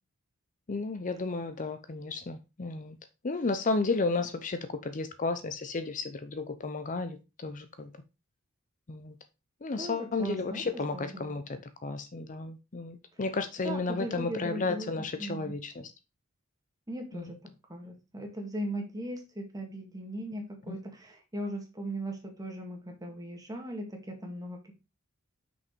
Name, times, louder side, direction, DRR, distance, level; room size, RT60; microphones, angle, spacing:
voice 1, 0.7-3.0 3.2-7.9 8.9-9.1 9.6-15.9 17.1-17.4 20.7-20.8, left 3 dB, 40° left, 0.6 m, -33 dB
voice 2, 9.8-11.4 13.6-14.9 15.2-15.5 16.9-24.8, right 1 dB, 20° right, 1.9 m, -39 dB
6.1 x 5.4 x 4.4 m
head